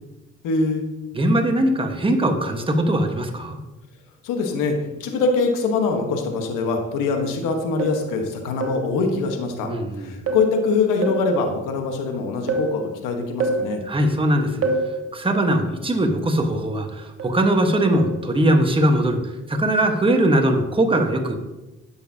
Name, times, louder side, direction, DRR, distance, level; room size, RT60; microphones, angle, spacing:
voice 1, 0.4-0.8 4.2-9.7 10.0-13.8, left 4 dB, 85° left, 4 dB, 1.2 m, -23 dB
voice 2, 1.1-3.6 9.6-10.1 13.9-14.7 15.1-19.2 19.5-21.4, right 1 dB, 15° right, 4 dB, 1.3 m, -20 dB
sound 1, 7.8-8.1 8.6-8.9 10.3-10.6 11.0-11.3 12.5-12.8 13.4-13.7 14.6-14.9 17.2-17.5 18.0-18.2, right 2 dB, 45° right, 1.3 m, -25 dB
10.5 x 7.0 x 2.8 m, 1.0 s
supercardioid pair, 75°, 31 cm